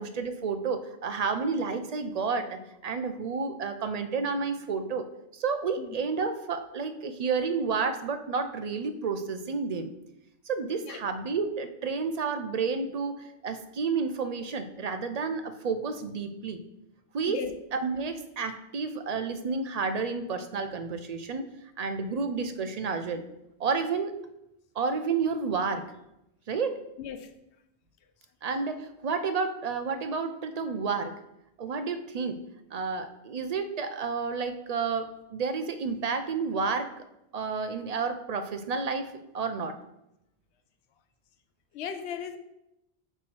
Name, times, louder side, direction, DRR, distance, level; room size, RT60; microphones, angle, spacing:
voice 1, 0.0-5.1 5.3-9.9 10.5-16.6 17.1-17.4 17.7-21.5 21.8-23.2 23.6-24.2 24.8-25.9 26.5-26.8 28.4-31.2 31.6-32.4 32.7-36.9 37.3-39.8, right 5 dB, 50° right, 8 dB, 0.5 m, -30 dB
voice 2, 27.0-27.3 41.7-42.4, left 8 dB, 85° left, 8 dB, 0.9 m, -36 dB
7.7 x 3.1 x 6.1 m, 0.87 s
omnidirectional pair, 1.1 m